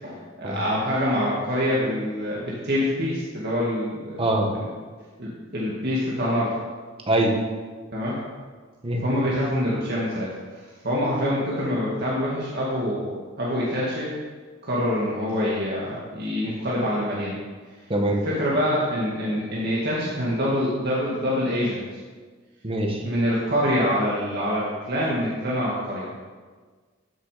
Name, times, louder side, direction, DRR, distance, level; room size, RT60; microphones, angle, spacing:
voice 1, 0.0-4.2 4.5-4.7 5.2-6.5 7.9-8.2 9.0-10.3 10.8-14.1 14.6-17.4 18.2-21.8 23.0-26.0, equal, 55° right, -6 dB, 2.1 m, -25 dB
voice 2, 22.6-23.0, right 1 dB, 30° right, 1 dB, 1.6 m, -23 dB
14.5 x 6.4 x 5.1 m, 1.5 s
head